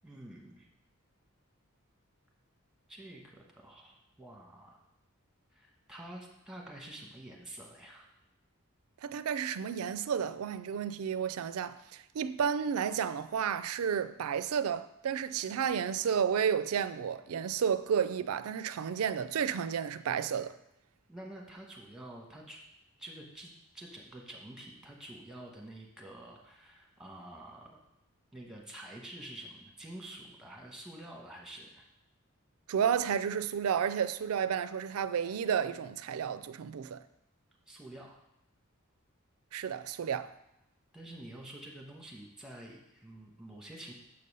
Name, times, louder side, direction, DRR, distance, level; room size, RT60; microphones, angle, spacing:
voice 1, 0.0-0.7 2.9-4.8 5.5-8.1 21.1-22.6 23.0-27.8 28.3-31.8 37.7-38.2 40.9-43.9, right 1 dB, ahead, 1.2 m, -48 dB
voice 2, 9.0-20.5 32.7-37.0 39.5-40.3, right 7 dB, 85° right, 0.4 m, -32 dB
6.8 x 5.4 x 5.4 m
head